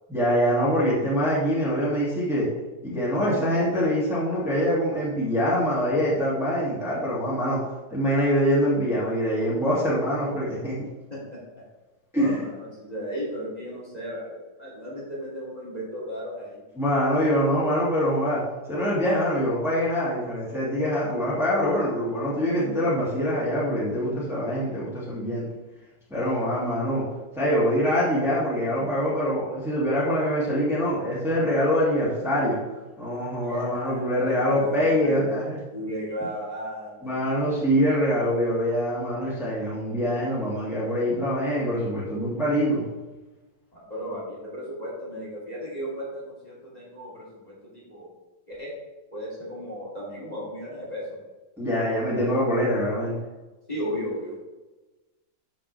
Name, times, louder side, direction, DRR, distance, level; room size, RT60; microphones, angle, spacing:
voice 1, 0.1-2.5 2.8-7.6 7.9-10.7 12.1-12.4 16.8-18.4 18.7-25.5 26.1-27.0 27.4-32.6 33.0-35.6 37.0-42.8 51.6-53.1, equal, ahead, -8 dB, 2.5 m, -24 dB
voice 2, 11.1-11.6 12.1-16.6 26.1-26.5 33.4-35.3 35.7-37.4 43.7-48.1 48.5-48.7 49.1-51.2 53.7-54.4, equal, 20° left, -6 dB, 2.7 m, -35 dB
12.5 x 5.8 x 3.4 m, 1.1 s
omnidirectional pair, 2.2 m